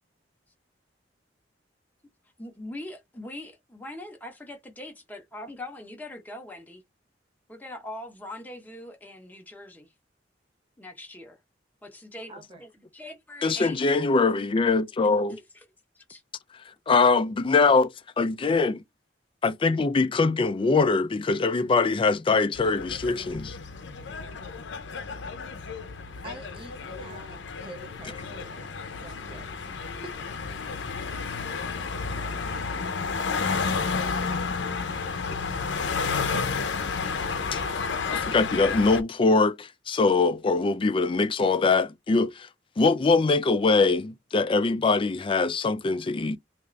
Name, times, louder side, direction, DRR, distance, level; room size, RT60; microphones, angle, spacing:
voice 1, 2.4-6.8 7.5-9.9 10.8-11.4 11.8-12.3 12.6-13.8 15.3-15.6 15.9-16.2, left 1 dB, 10° left, 0.9 m, -42 dB
voice 2, 12.3-12.6 26.2-29.6 30.0-30.1, right 2 dB, 30° right, 0.7 m, -46 dB
voice 3, 13.4-15.4 16.9-17.9 18.2-18.8 19.4-23.5 28.0-28.1 37.5-37.6 38.1-42.5 42.8-46.4, left 4 dB, 30° left, 0.4 m, -23 dB
sound 1, 22.5-39.0, left 4 dB, 85° left, 0.6 m, -31 dB
3.5 x 2.5 x 3.1 m
head